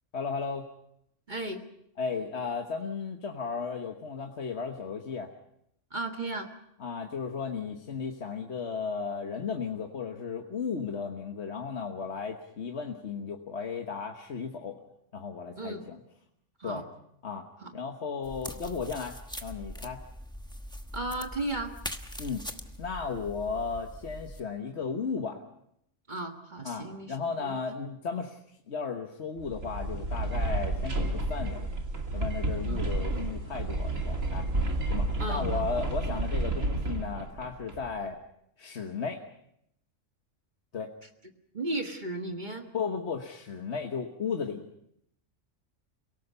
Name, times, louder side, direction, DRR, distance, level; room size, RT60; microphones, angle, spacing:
voice 1, 0.1-0.7 2.0-5.3 6.8-14.8 15.1-16.0 16.6-16.9 17.2-17.5 17.7-20.0 22.2-22.5 22.8-25.4 26.6-31.7 32.1-34.5 34.9-38.2 38.6-39.2 40.7-40.9 42.7-44.7, left 5 dB, 60° left, 3 dB, 1.5 m, -35 dB
voice 2, 1.3-1.6 5.9-6.5 15.6-15.8 16.6-16.8 17.6-17.7 20.9-21.7 26.1-27.1 27.4-27.6 32.7-32.8 35.2-35.7 41.5-42.7, right 2 dB, 35° right, 5 dB, 1.6 m, -34 dB
sound 1, 18.2-24.4, equal, 5° left, 1.0 m, -42 dB
sound 2, 29.4-37.9, right 2 dB, 80° right, 2.9 m, -31 dB
30.0 x 18.0 x 5.5 m, 0.75 s
omnidirectional pair, 1.3 m